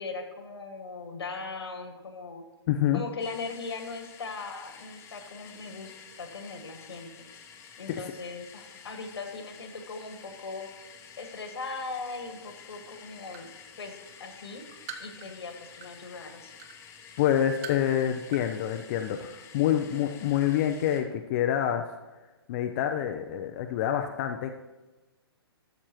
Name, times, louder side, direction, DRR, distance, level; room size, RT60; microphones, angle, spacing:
voice 1, 0.0-2.4 2.9-5.9 6.2-7.2 7.8-10.7 11.2-13.5 13.8-16.5, left 4 dB, 70° left, 5 dB, 1.7 m, -39 dB
voice 2, 2.7-3.0 7.9-8.0 17.2-21.9 22.5-24.5, left 10 dB, 40° left, 5 dB, 0.6 m, -27 dB
sound 1, 3.2-21.0, left 7 dB, 20° left, 1.0 m, -50 dB
sound 2, 12.4-12.5 12.8-13.6 14.1-16.1 16.6-16.8 17.3-17.9 18.3-18.5 18.7-18.8, right 7 dB, 35° right, 0.9 m, -43 dB
13.0 x 7.3 x 3.0 m, 1.2 s
figure-of-eight pair, 125°, 14 cm